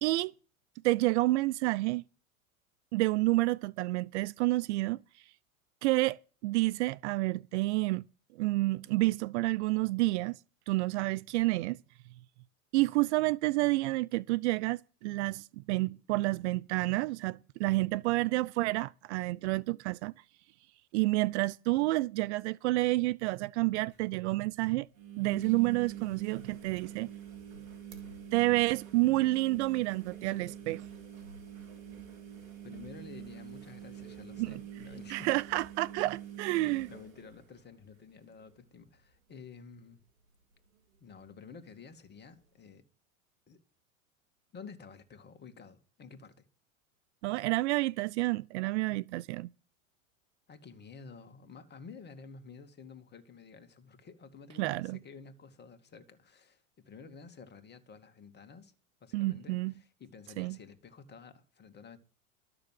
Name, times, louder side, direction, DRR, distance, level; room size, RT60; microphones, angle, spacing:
voice 1, 0.0-0.3 0.8-2.0 2.9-5.0 5.8-8.1 8.4-10.4 10.7-11.8 12.7-20.1 20.9-24.9 25.2-27.1 28.3-30.8 34.4-34.6 35.1-36.9 47.2-49.5 54.6-55.0 59.1-59.7 60.4-60.6, right 20 dB, 55° right, 0.5 m, -29 dB
sound 1, 23.7-23.8 23.9-24.0 24.9-38.0 38.4-38.8 39.1-39.2 41.0-41.1, right 10 dB, 80° right, 3.9 m, -45 dB
voice 2, 32.6-35.4 36.6-40.0 41.0-42.8 43.5-43.6 44.5-46.4 50.5-58.7 59.0-62.0, left 5 dB, 25° left, 2.3 m, -51 dB
13.0 x 6.8 x 7.6 m
hypercardioid pair, 105°, 41 cm